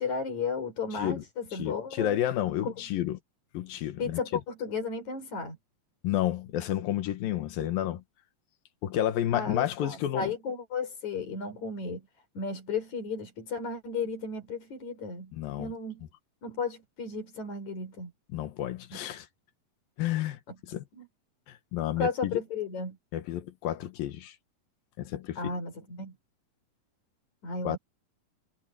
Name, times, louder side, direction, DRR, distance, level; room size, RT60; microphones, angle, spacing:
voice 1, 0.0-2.2 2.6-2.7 4.0-5.6 9.3-12.1 12.3-15.3 15.6-16.1 16.4-18.1 18.9-19.0 20.5-20.6 20.9-21.1 22.0-23.0 25.4-26.1 27.4-27.8, left 4 dB, 55° left, 6.8 m, -34 dB
voice 2, 0.9-1.2 1.6-3.2 3.5-4.2 6.0-8.0 8.8-10.3 15.3-15.7 18.3-19.3 20.0-20.4 20.7-20.8 21.5-22.4 23.1-24.4 25.0-25.5 27.6-27.8, left 12 dB, 85° left, 3.1 m, -31 dB
omnidirectional pair, 4.0 m